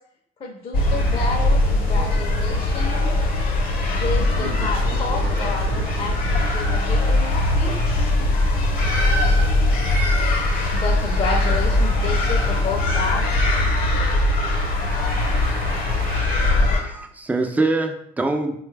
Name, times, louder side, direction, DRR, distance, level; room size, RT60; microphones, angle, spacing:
voice 1, 0.4-3.1 3.9-8.3 10.7-13.4, left 4 dB, 35° left, -1 dB, 0.6 m, -30 dB
sound 1, 0.7-16.8, left 2 dB, 60° left, 0.9 m, -20 dB
voice 2, 4.3-6.2 14.1-16.2, right 4 dB, 60° right, 2 dB, 0.8 m, -37 dB
voice 3, 16.4-18.5, right 2 dB, 10° right, 5 dB, 0.4 m, -24 dB
3.8 x 2.3 x 3.2 m, 0.72 s
cardioid pair, 110°, 17 cm